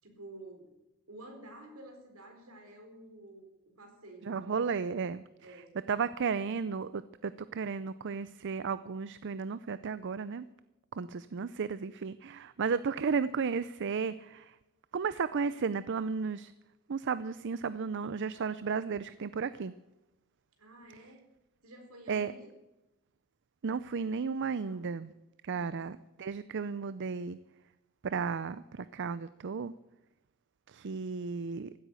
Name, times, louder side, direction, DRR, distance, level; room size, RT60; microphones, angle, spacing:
voice 1, 0.0-0.8 1.1-3.5 3.8-4.6 5.4-5.7 20.6-21.3 21.6-22.5 24.5-24.9 25.5-25.8, right 1 dB, 70° right, 3 dB, 4.2 m, -51 dB
voice 2, 4.2-5.2 5.9-10.4 10.9-14.5 14.9-16.5 16.9-19.7 22.1-22.3 23.6-25.1 25.4-27.4 28.0-29.7 30.7-31.7, right 5 dB, 55° right, 15 dB, 0.5 m, -34 dB
15.5 x 9.0 x 8.2 m, 0.99 s
head